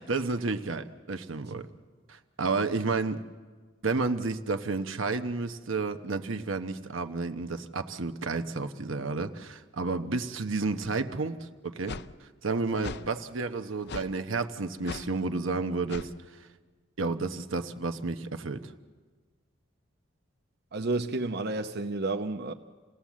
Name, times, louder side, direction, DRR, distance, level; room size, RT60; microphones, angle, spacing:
voice 1, 0.0-1.7 2.1-3.2 3.8-16.1 16.4-16.5 17.0-18.7, right 3 dB, 80° right, 8 dB, 1.0 m, -31 dB
sound 1, 11.9-12.1 12.8-13.1 13.9-14.1 14.8-15.1 15.9-16.1, left 5 dB, 60° left, 0.6 m, -38 dB
voice 2, 20.7-22.5, right 2 dB, 55° right, 5 dB, 0.8 m, -31 dB
28.0 x 17.5 x 7.4 m, 1.4 s
head